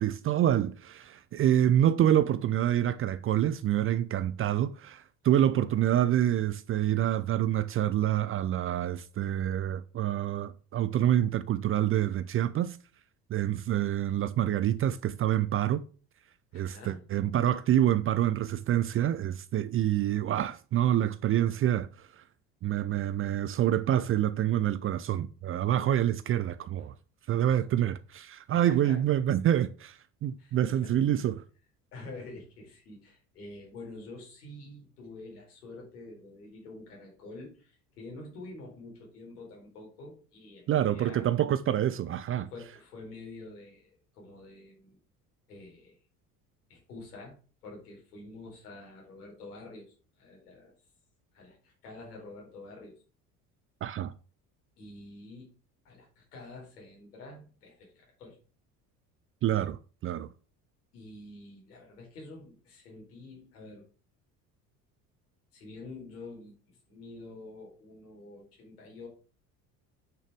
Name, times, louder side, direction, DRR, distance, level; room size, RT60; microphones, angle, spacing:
voice 1, 0.0-12.8 13.3-15.8 16.5-21.9 22.6-26.9 27.3-31.4 40.7-42.5 53.8-54.1 59.4-60.3, right 11 dB, 30° right, 0.5 m, -27 dB
voice 2, 6.0-6.4 16.5-17.0 21.6-21.8 26.8-26.9 27.5-27.6 28.5-29.0 30.4-30.9 31.9-41.3 42.5-45.0 45.5-46.0 46.7-47.4 47.6-50.7 51.3-53.0 54.8-55.5 55.8-58.4 60.9-63.8 65.5-69.1, left 2 dB, 75° left, 4.0 m, -47 dB
9.0 x 6.3 x 3.6 m
figure-of-eight pair, 60°, 47 cm